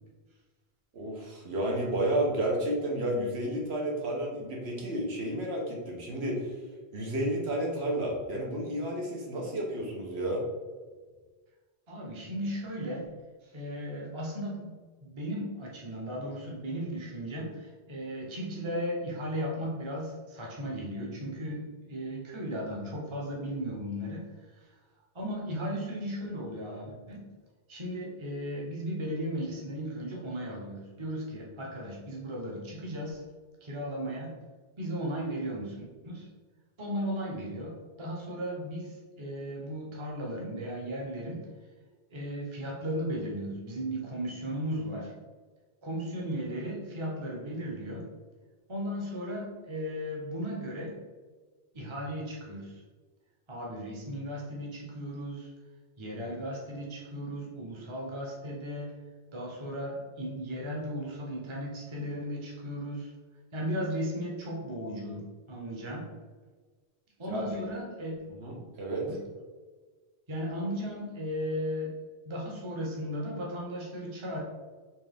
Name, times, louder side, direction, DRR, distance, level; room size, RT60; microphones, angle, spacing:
voice 1, 0.9-6.6 6.9-10.4 67.3-67.4 68.4-69.1, right 1 dB, 75° right, -2 dB, 1.2 m, -31 dB
voice 2, 11.9-13.0 13.4-14.7 15.0-24.7 25.1-27.3 27.7-33.2 33.6-34.3 34.8-36.3 36.8-41.5 42.1-45.1 45.8-48.1 48.7-50.9 51.7-52.8 53.5-55.5 56.0-58.9 59.3-63.1 63.5-66.1 67.2-68.2 69.0-69.2 70.3-72.0 72.2-74.4, equal, 30° right, -2 dB, 0.8 m, -36 dB
4.6 x 3.3 x 3.5 m, 1.4 s
omnidirectional pair, 1.1 m